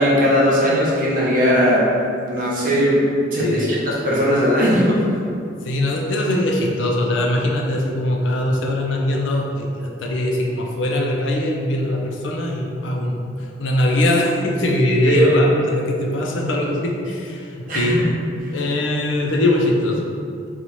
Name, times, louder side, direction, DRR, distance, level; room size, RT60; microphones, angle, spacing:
voice 1, 0.0-1.8 2.3-3.0 3.3-5.1 15.0-15.4 17.7-18.1, equal, 45° right, -6 dB, 0.8 m, -18 dB
voice 2, 3.4-3.7 5.6-18.0 18.3-20.0, left 1 dB, 85° left, 0 dB, 0.5 m, -21 dB
3.0 x 2.3 x 4.0 m, 2.4 s
head